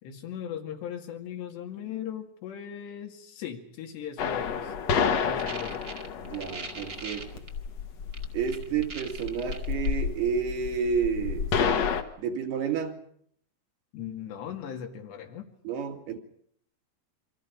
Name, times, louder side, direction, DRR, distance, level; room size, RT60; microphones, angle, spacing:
voice 1, 0.0-4.7 5.1-5.9 13.9-15.5, left 9 dB, 85° left, 2 dB, 4.5 m, -38 dB
sound 1, 4.2-12.0, left 6 dB, 60° left, 1.9 m, -30 dB
sound 2, 5.4-7.5 8.1-9.9, right 4 dB, 30° right, 1.6 m, -40 dB
voice 2, 6.2-7.5 8.3-11.5 12.2-13.0 15.6-16.2, right 6 dB, 70° right, 4 dB, 4.2 m, -30 dB
29.5 x 24.5 x 5.2 m, 0.65 s
omnidirectional pair, 4.8 m